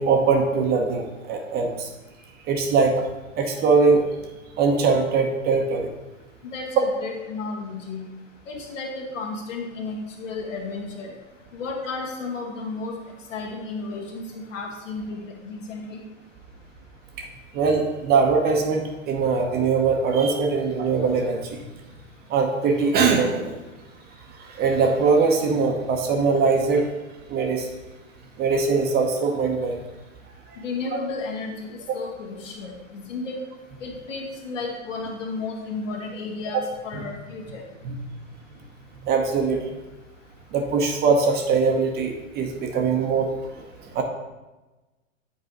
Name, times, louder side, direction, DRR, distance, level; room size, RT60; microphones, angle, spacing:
voice 1, 0.0-1.9 2.5-3.0 3.4-4.1 4.6-5.9 17.2-17.3 17.5-21.6 22.3-23.6 24.4-26.9 27.3-27.7 28.4-29.8 36.5-36.6 36.9-37.0 37.8-38.0 39.0-39.6 40.5-43.6 43.9-44.0, right 4 dB, 25° right, 3 dB, 0.8 m, -21 dB
voice 2, 6.5-8.1 8.5-11.1 11.5-12.9 13.3-16.0 30.6-33.4 33.8-37.6, left 3 dB, 65° left, 0 dB, 1.8 m, -33 dB
8.2 x 4.9 x 3.9 m, 1.1 s
figure-of-eight pair, 105°, 40 cm